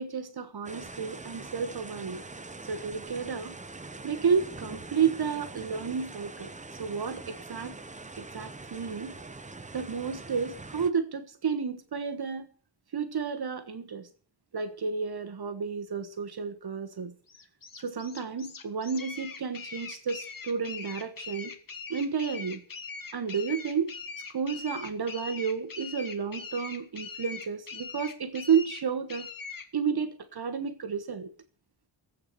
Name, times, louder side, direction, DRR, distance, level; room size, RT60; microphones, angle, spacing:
voice 1, 0.0-2.2 2.7-3.6 4.0-6.5 6.8-7.8 8.2-9.2 9.7-12.5 12.9-14.1 14.5-17.1 17.8-21.5 21.9-22.6 23.1-23.9 24.3-29.3 29.7-31.3, right 6 dB, 55° right, 1.3 m, -31 dB
sound 1, 0.6-10.9, right 3 dB, 15° right, 0.8 m, -43 dB
sound 2, 17.3-29.7, left 5 dB, 45° left, 1.6 m, -42 dB
16.5 x 8.3 x 6.8 m
wide cardioid pair, 150°, 46 cm